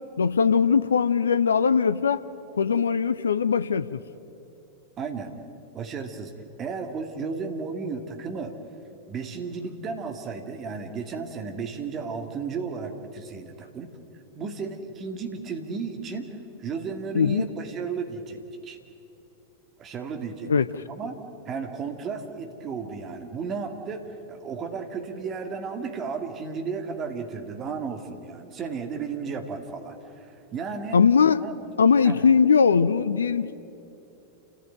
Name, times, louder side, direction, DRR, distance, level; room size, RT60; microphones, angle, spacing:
voice 1, 0.2-2.2 2.6-4.0 17.1-17.5 20.5-20.7 30.9-31.5 31.8-33.5, left 6 dB, 70° left, 0.6 m, -20 dB
voice 2, 5.0-5.3 5.7-6.3 6.6-8.6 9.1-13.9 14.4-16.3 16.6-18.8 19.8-20.5 20.9-21.2 21.5-30.3 30.5-31.0 31.4-31.5 32.0-32.3, right 5 dB, 30° right, 2.3 m, -34 dB
29.0 x 15.0 x 9.3 m
figure-of-eight pair, 90°, 0 cm